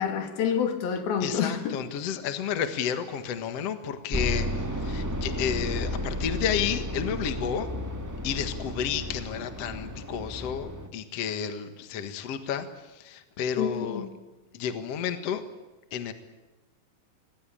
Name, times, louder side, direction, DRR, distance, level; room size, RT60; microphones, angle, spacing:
voice 1, 0.0-1.8 13.6-14.1, left 7 dB, 75° left, 4.2 m, -28 dB
voice 2, 1.2-7.7 8.2-14.1 14.5-15.4 15.9-16.1, left 8 dB, 50° left, 2.2 m, -31 dB
sound 1, 4.1-10.9, left 1 dB, 20° right, 0.4 m, -33 dB
26.0 x 21.0 x 8.7 m
omnidirectional pair, 4.4 m